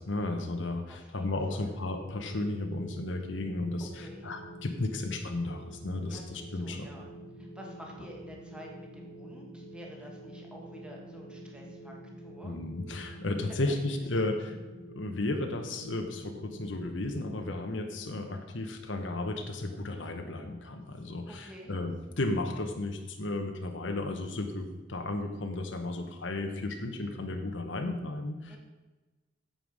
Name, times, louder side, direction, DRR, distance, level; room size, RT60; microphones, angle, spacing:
voice 1, 0.0-6.9 12.4-14.6 14.9-28.6, left 2 dB, 85° left, 4 dB, 1.1 m, -34 dB
voice 2, 0.9-1.8 3.8-4.3 6.1-7.1 7.4-12.6 13.7-13.8 14.0-14.2 21.3-21.7 28.5-28.6, equal, 5° right, -1 dB, 1.8 m, -49 dB
sound 1, 1.7-17.2, right 1 dB, 50° left, 1.8 m, -47 dB
9.3 x 7.9 x 4.9 m, 1.2 s
head